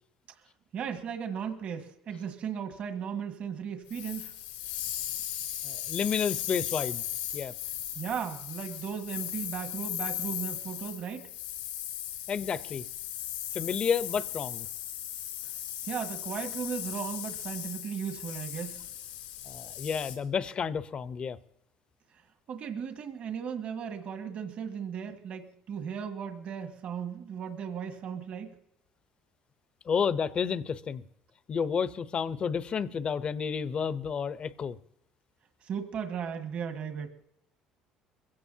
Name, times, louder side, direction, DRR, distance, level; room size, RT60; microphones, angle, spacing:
voice 1, 0.7-4.3 8.0-11.3 15.9-18.8 22.5-28.5 35.6-37.1, right 7 dB, 55° right, 1.7 m, -36 dB
sound 1, 3.9-20.2, left 12 dB, 90° left, 3.7 m, -37 dB
voice 2, 5.6-7.0 7.3-7.5 12.3-12.9 13.5-14.7 19.4-21.4 29.8-31.0 31.5-34.8, left 6 dB, 40° left, 0.8 m, -31 dB
22.0 x 16.5 x 2.8 m
supercardioid pair, 95°, 3 cm